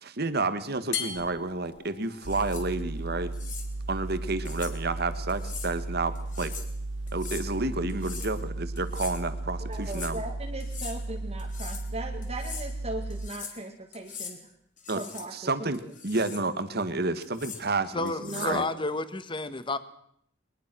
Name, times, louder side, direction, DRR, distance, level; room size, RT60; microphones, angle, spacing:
voice 1, 0.0-3.3 3.9-6.5 7.1-10.2 14.9-15.0 15.3-18.6, right 3 dB, 55° right, 11 dB, 1.7 m, -30 dB
sound 1, 0.9-7.9, left 8 dB, 65° left, 3.4 m, -43 dB
sound 2, 2.1-2.7 3.3-3.7 4.5-4.8 5.3-5.7 6.2-6.7 7.1-7.5 7.9-8.4 8.8-9.2 9.7-10.1 10.6-11.0 11.4-11.9 12.2-12.7 13.1-13.6 13.9-14.4 14.8-15.3 15.7-16.5 17.2-17.6 18.1-18.6, left 7 dB, 40° left, 3.4 m, -42 dB
sound 3, 2.2-13.3, right 2 dB, 80° right, 1.0 m, -35 dB
voice 2, 9.6-14.4 14.9-15.3 15.6-15.9 18.2-18.8, right 2 dB, 35° right, 1 dB, 2.1 m, -38 dB
voice 3, 17.9-19.8, left 2 dB, 25° left, 13 dB, 1.3 m, -31 dB
22.5 x 20.0 x 6.2 m, 0.69 s
head